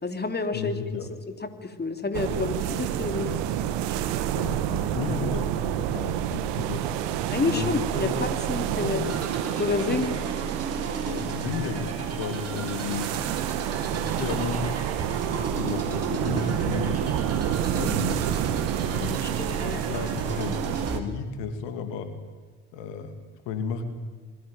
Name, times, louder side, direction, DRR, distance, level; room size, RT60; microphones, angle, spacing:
voice 1, 0.0-0.8 1.6-3.3 7.3-9.0 9.6-10.2 18.8-19.8, left 3 dB, 20° left, 7 dB, 3.3 m, -29 dB
voice 2, 0.5-1.1 4.3-6.8 7.3-8.2 8.7-9.2 11.1-13.1 13.9-17.0 17.7-18.4 19.7-22.1 22.7-23.1 23.5-23.8, left 5 dB, 65° left, 8 dB, 2.7 m, -33 dB
sound 1, 2.1-21.0, right 11 dB, 65° right, 1.9 m, -29 dB
sound 2, 9.0-21.0, right 3 dB, 30° right, 7.2 m, -36 dB
26.0 x 22.5 x 9.1 m, 1.5 s
hypercardioid pair, 50°, 46 cm